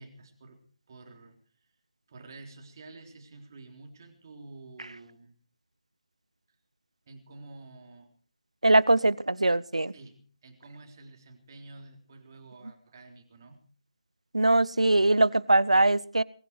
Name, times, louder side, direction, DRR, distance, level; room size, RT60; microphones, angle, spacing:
voice 1, 0.0-1.7 2.1-5.3 7.1-8.1 9.9-13.6, right 3 dB, 35° right, 4 dB, 3.7 m, -49 dB
voice 2, 8.6-9.9 14.3-16.2, right 2 dB, 75° right, 22 dB, 0.8 m, -22 dB
20.5 x 14.5 x 4.6 m, 0.40 s
figure-of-eight pair, 150°, 3 cm